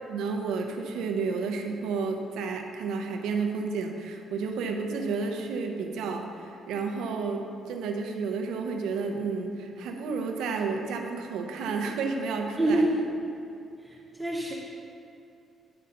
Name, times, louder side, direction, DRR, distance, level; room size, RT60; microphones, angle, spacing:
voice 1, 0.1-12.9, right 4 dB, 85° right, 4 dB, 0.7 m, -31 dB
voice 2, 12.6-13.0 14.2-14.5, right 1 dB, 5° right, -3 dB, 0.8 m, -24 dB
9.7 x 5.5 x 3.9 m, 2.6 s
cardioid pair, 90°, 0 cm